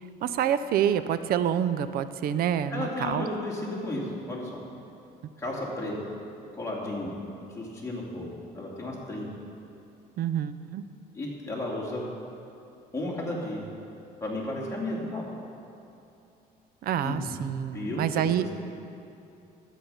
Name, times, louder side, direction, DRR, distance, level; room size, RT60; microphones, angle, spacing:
voice 1, 0.0-3.3 10.2-10.8 16.8-18.5, right 9 dB, 60° right, 13 dB, 0.5 m, -27 dB
voice 2, 2.7-4.6 5.4-6.0 6.6-7.1 7.5-8.3 8.5-9.3 11.1-12.0 12.9-13.6 14.2-15.2 17.0-17.3 17.7-18.5, left 1 dB, 15° left, -5 dB, 2.6 m, -33 dB
11.5 x 8.2 x 5.7 m, 2.7 s
cardioid pair, 110°, 17 cm